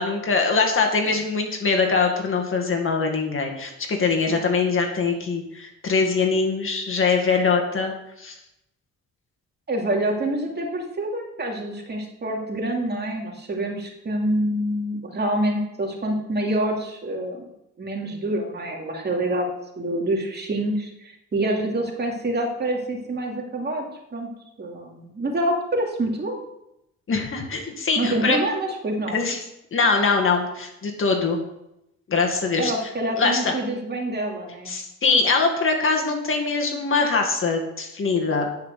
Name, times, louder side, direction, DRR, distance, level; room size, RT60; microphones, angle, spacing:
voice 1, 0.0-7.9 8.2-8.3 27.1-28.4 29.1-29.4 29.7-31.4 32.1-32.7 33.2-33.5 34.7-38.5, left 4 dB, 45° left, 2 dB, 1.9 m, -22 dB
voice 2, 9.7-17.5 17.8-19.5 19.8-23.8 24.1-24.3 24.6-26.4 28.0-29.2 32.6-34.7, right 1 dB, 35° right, 0 dB, 2.7 m, -26 dB
10.5 x 5.7 x 6.8 m, 0.85 s
cardioid pair, 90°, 30 cm